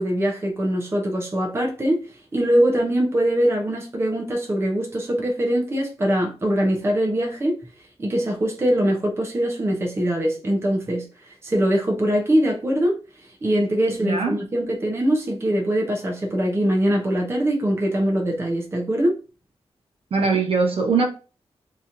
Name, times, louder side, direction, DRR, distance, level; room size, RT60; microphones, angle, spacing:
voice 1, 0.0-7.6 8.0-13.0 13.4-19.2, equal, 25° right, 0.7 m, -22 dB
voice 2, 14.0-14.4 20.1-21.1, right 4 dB, 55° right, 0.8 m, -21 dB
3.0 x 2.8 x 3.7 m
wide cardioid pair, 170°, 11 cm